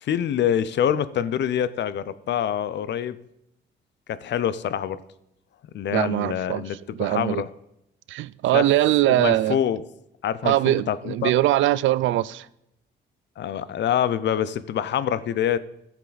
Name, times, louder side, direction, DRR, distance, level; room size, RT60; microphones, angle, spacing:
voice 1, 0.0-3.2 4.1-5.0 5.7-7.5 8.5-8.6 9.1-9.8 10.2-11.3 13.4-15.6, left 9 dB, 65° left, 0.6 m, -25 dB
voice 2, 5.9-7.4 8.1-9.6 10.4-12.5, right 14 dB, 75° right, 0.4 m, -22 dB
13.0 x 7.3 x 4.1 m
cardioid pair, 90°, 20 cm